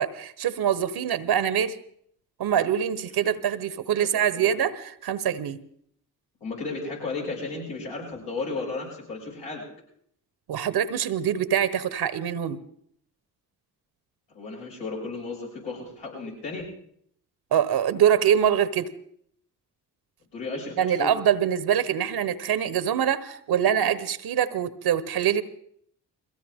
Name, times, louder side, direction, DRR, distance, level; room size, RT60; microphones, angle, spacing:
voice 1, 0.0-1.8 2.4-5.6 10.5-12.6 17.5-18.9 20.8-25.4, right 9 dB, 65° right, 15 dB, 1.0 m, -24 dB
voice 2, 4.0-4.5 6.4-9.6 14.3-16.7 20.3-21.1, left 3 dB, 75° left, -4 dB, 6.1 m, -34 dB
22.0 x 16.5 x 3.6 m, 0.66 s
hypercardioid pair, 40°, 42 cm